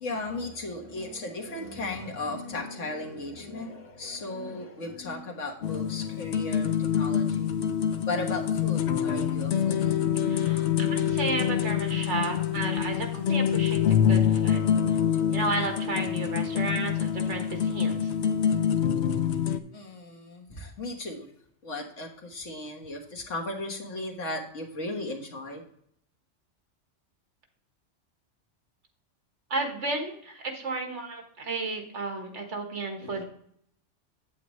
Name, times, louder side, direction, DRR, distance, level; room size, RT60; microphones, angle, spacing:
voice 1, 0.0-7.6 8.1-10.0 19.7-21.3 21.6-25.6 33.0-33.2, left 2 dB, 90° left, 1 dB, 1.8 m, -36 dB
sound 1, 5.6-19.6, left 9 dB, 70° left, 0.9 m, -26 dB
voice 2, 10.3-13.8 14.1-14.6 15.3-18.1 29.5-33.2, right 3 dB, 70° right, 3 dB, 1.7 m, -33 dB
8.4 x 8.3 x 3.1 m, 0.68 s
omnidirectional pair, 1.2 m